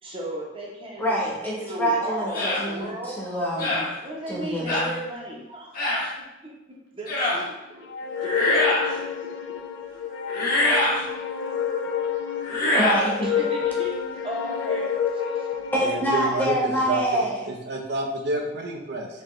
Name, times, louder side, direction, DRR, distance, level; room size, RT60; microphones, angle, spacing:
voice 1, 0.0-1.1 1.4-3.2 4.0-6.0 6.4-6.5 6.9-7.9 8.2-9.6 9.9-10.0 13.2-14.0 14.2-15.5, right 1 dB, 30° right, -3 dB, 0.8 m, -36 dB
voice 2, 1.0-3.8 4.3-4.9 12.7-13.3 15.7-17.5, equal, 10° left, -5 dB, 0.9 m, -26 dB
sound 1, 2.3-2.6 3.6-3.9 4.7-4.9 5.7-6.1 7.1-7.4 8.2-8.9 10.3-11.0 12.4-13.1, left 1 dB, 50° left, 1.1 m, -23 dB
sound 2, 7.9-16.0, left 7 dB, 85° left, 0.4 m, -29 dB
voice 3, 15.8-19.1, right 2 dB, 65° right, 2 dB, 0.6 m, -29 dB
4.5 x 2.9 x 3.0 m, 1.0 s
head